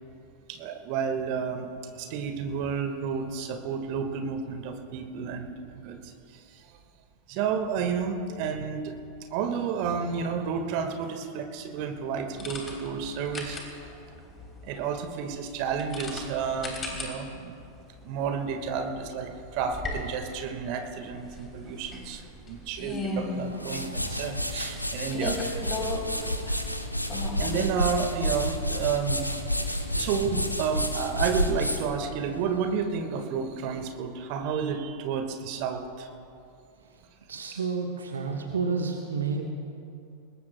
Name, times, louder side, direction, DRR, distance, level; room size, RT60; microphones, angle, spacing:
voice 1, 0.5-1.7 1.9-6.8 7.3-8.9 9.3-13.6 14.6-17.5 18.0-25.4 26.1-26.6 27.4-36.1, right 6 dB, 45° right, 5 dB, 1.6 m, -31 dB
sound 1, 12.4-27.6, left 2 dB, 20° left, 3.4 m, -38 dB
sound 2, 23.4-32.7, equal, 85° left, 1.0 m, -30 dB
voice 2, 37.3-39.5, right 5 dB, 70° right, 2 dB, 1.2 m, -30 dB
26.0 x 20.5 x 2.2 m, 2.5 s
figure-of-eight pair, 90°, 0 cm